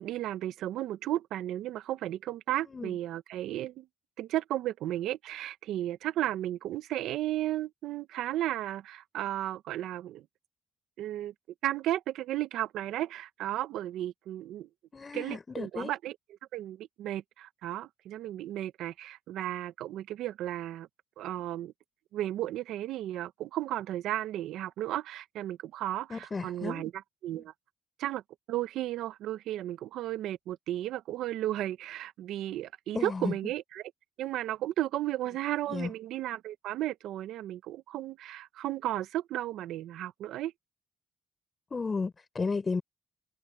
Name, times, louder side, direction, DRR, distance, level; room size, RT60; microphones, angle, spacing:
voice 1, 0.0-3.9 4.2-10.3 11.0-11.3 11.6-14.7 15.1-16.1 16.5-20.9 21.2-21.7 22.1-26.9 27.2-27.5 28.0-28.2 28.5-33.8 34.2-40.5, right 13 dB, 80° right, 1.3 m, -34 dB
voice 2, 2.6-3.0 14.9-15.9 26.1-26.9 27.3-27.4 32.9-33.4 35.7-35.9 41.7-42.8, left 4 dB, 35° left, 6.1 m, -34 dB
supercardioid pair, 60°, 0 cm